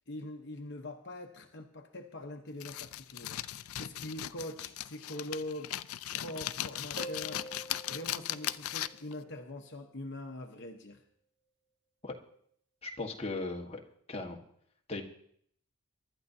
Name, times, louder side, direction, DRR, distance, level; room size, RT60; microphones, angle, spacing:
voice 1, 0.1-5.7 6.1-7.5 7.9-11.0, left 1 dB, 55° left, 4 dB, 1.0 m, -43 dB
sound 1, 2.6-9.1, left 12 dB, 85° left, 0.5 m, -38 dB
Harp, 7.0-9.5 13.0-13.1, right 1 dB, 55° right, 1.4 m, -47 dB
voice 2, 12.8-13.8 14.1-14.4 14.9-15.0, left 2 dB, 30° left, 0 dB, 1.4 m, -37 dB
23.5 x 12.0 x 2.7 m, 0.66 s
head